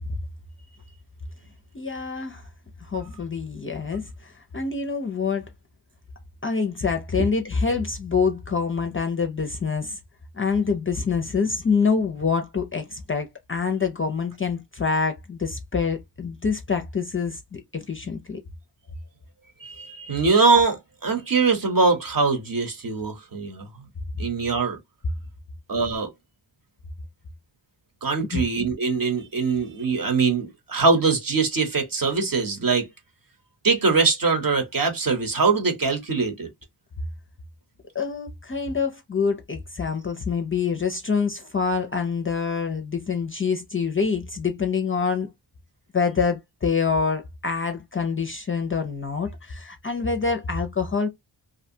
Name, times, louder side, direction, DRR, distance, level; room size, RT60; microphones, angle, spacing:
voice 1, 1.7-2.5 2.8-5.5 6.4-10.0 10.3-18.4 19.9-20.1 28.3-28.4 37.9-45.3 45.9-51.1, left 5 dB, 30° left, 0.4 m, -26 dB
voice 2, 19.6-23.7 24.2-24.8 25.7-26.1 28.0-32.9 33.6-36.5, right 4 dB, 45° right, 0.9 m, -22 dB
2.6 x 2.2 x 2.6 m
cardioid pair, 65°, 47 cm